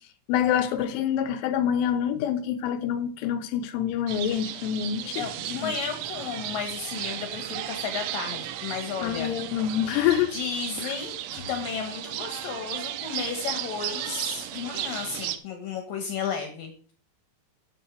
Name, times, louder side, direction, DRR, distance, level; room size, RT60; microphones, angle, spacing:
voice 1, 0.3-5.3 5.6-5.7 9.0-10.3, left 9 dB, 85° left, 3.3 m, -26 dB
sound 1, 4.1-15.4, right 12 dB, 80° right, 2.9 m, -35 dB
voice 2, 5.1-9.3 10.3-16.9, left 6 dB, 70° left, 2.2 m, -33 dB
10.0 x 6.7 x 6.2 m
omnidirectional pair, 5.9 m